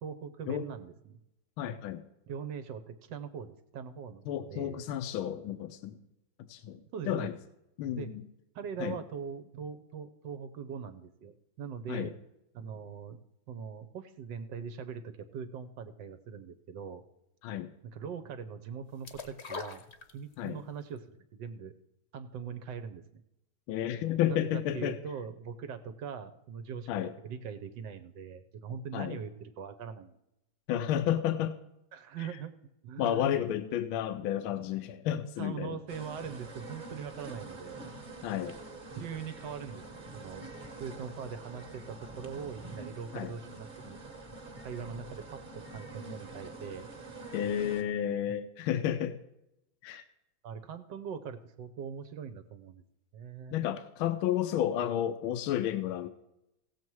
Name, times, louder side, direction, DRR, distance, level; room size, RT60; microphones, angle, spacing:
voice 1, 0.0-1.2 2.3-4.8 6.9-7.3 8.0-8.1 8.5-12.1 12.5-13.2 13.5-17.0 17.9-19.8 20.1-21.7 22.1-23.2 24.3-30.2 31.9-32.5 32.8-33.4 35.4-37.9 38.9-40.5 40.8-44.0 44.6-46.9 50.4-52.8 53.1-53.6, right 7 dB, 65° right, 10 dB, 1.3 m, -41 dB
voice 2, 1.6-2.0 4.3-6.0 6.5-7.3 7.8-8.2 8.8-9.0 11.9-12.1 17.4-17.7 20.4-20.6 23.7-25.0 26.9-27.1 28.9-29.2 30.7-31.6 32.2-32.3 33.0-35.8 38.2-38.6 43.1-43.3 47.3-49.2 49.8-50.0 53.5-56.1, left 11 dB, 80° left, 9 dB, 1.5 m, -31 dB
sound 1, 19.0-20.6 21.0-21.1, left 5 dB, 40° left, 1.0 m, -42 dB
sound 2, 35.9-47.8, right 3 dB, 25° right, 1.3 m, -46 dB
16.5 x 7.4 x 4.6 m, 0.87 s
omnidirectional pair, 2.3 m